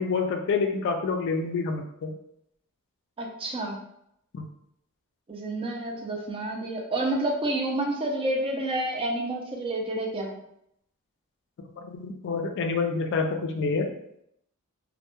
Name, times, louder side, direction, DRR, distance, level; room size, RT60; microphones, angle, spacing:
voice 1, 0.0-2.1 4.3-4.5 11.8-13.9, left 4 dB, 55° left, 4 dB, 0.3 m, -27 dB
voice 2, 3.2-3.8 5.3-10.4, right 1 dB, 25° right, 0 dB, 0.4 m, -29 dB
2.2 x 2.1 x 2.9 m, 0.76 s
head